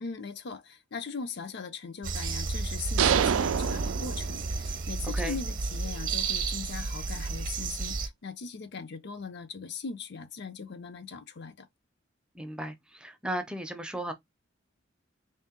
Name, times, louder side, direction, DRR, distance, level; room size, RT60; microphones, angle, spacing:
voice 1, 0.0-11.7, left 5 dB, 60° left, 0.6 m, -40 dB
sound 1, 2.0-8.1, right 3 dB, 45° right, 0.7 m, -32 dB
sound 2, 3.0-4.8, right 8 dB, 90° right, 0.3 m, -27 dB
voice 2, 12.3-14.1, right 1 dB, 5° right, 0.5 m, -35 dB
3.4 x 2.8 x 3.6 m
head